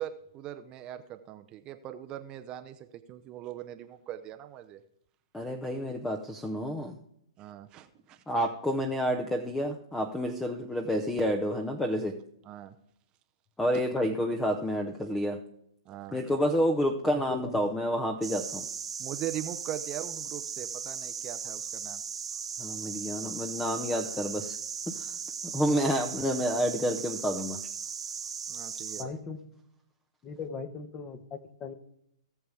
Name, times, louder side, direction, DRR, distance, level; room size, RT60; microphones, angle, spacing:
voice 1, 0.0-4.8 7.4-8.2 12.4-12.8 15.9-16.2 19.0-22.0 28.5-29.2, right 12 dB, 25° right, 8 dB, 0.7 m, -40 dB
voice 2, 5.3-7.0 8.3-12.1 13.6-15.4 16.1-18.6 22.6-24.6 24.9-25.1 25.4-27.6, equal, 5° left, 5 dB, 0.8 m, -29 dB
voice 3, 17.1-17.6 29.0-29.4 30.2-31.7, left 5 dB, 20° left, 10 dB, 1.1 m, -39 dB
sound 1, 18.2-29.0, right 6 dB, 85° right, 1.0 m, -37 dB
18.0 x 6.9 x 3.4 m, 0.73 s
hypercardioid pair, 135°, 3 cm